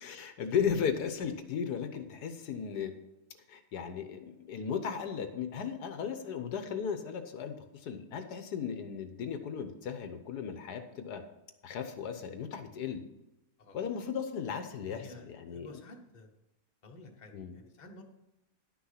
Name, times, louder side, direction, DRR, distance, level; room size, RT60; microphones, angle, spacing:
voice 1, 0.0-2.9 3.5-11.2 11.6-13.0 13.7-15.8 17.3-17.6, left 7 dB, 80° left, 8 dB, 1.5 m, -36 dB
voice 2, 14.9-16.3 16.8-18.0, left 2 dB, 30° left, 2 dB, 1.2 m, -52 dB
11.0 x 6.3 x 5.7 m, 0.96 s
omnidirectional pair, 1.7 m